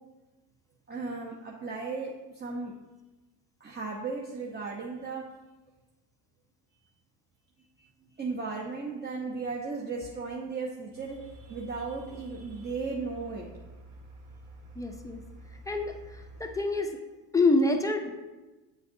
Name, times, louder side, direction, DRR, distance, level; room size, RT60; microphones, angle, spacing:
voice 1, 0.9-2.7 3.6-5.2 7.8-7.9 8.2-13.5, right 4 dB, 20° right, -2 dB, 0.9 m, -36 dB
sound 1, 10.9-16.5, right 1 dB, 85° right, 1.4 m, -49 dB
voice 2, 14.8-15.2 15.7-16.9 17.3-18.1, left 2 dB, 5° left, 3 dB, 0.6 m, -27 dB
7.7 x 6.5 x 2.7 m, 1.1 s
supercardioid pair, 105°, 50 cm